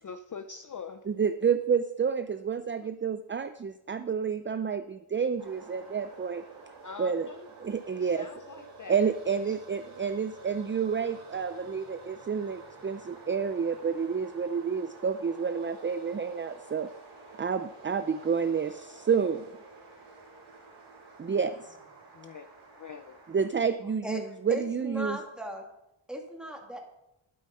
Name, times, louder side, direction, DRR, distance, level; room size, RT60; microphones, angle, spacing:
voice 1, 0.0-1.1 2.8-2.9 6.8-7.5 7.9-9.0 9.5-9.6 22.1-23.2 23.8-23.9, left 5 dB, 40° left, 0.5 m, -44 dB
voice 2, 1.1-6.4 7.0-7.3 7.6-8.3 8.9-16.9 17.4-19.5 21.2-21.7 23.3-25.2, right 6 dB, 25° right, 0.3 m, -29 dB
sound 1, 5.4-23.5, right 3 dB, 60° right, 4.0 m, -50 dB
voice 3, 24.0-25.7 26.1-26.8, left 1 dB, ahead, 1.9 m, -38 dB
11.5 x 9.0 x 5.4 m
wide cardioid pair, 145°, 49 cm